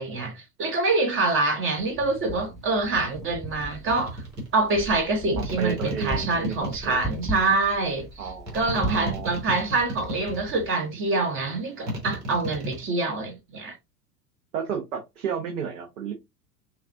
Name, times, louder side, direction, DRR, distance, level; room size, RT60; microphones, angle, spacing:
voice 1, 0.0-4.2 4.5-8.3 8.5-13.7, right 3 dB, 25° right, 0.9 m, -26 dB
Wind, 1.8-10.7, right 1 dB, ahead, 0.5 m, -38 dB
sound 1, 3.9-4.5 5.4-7.5 8.5-10.7 11.9-12.8, equal, 80° right, 1.9 m, -33 dB
voice 2, 5.3-7.0 8.2-9.3 14.5-16.1, right 7 dB, 60° right, 1.1 m, -32 dB
5.7 x 2.4 x 2.6 m
figure-of-eight pair, 85°, 48 cm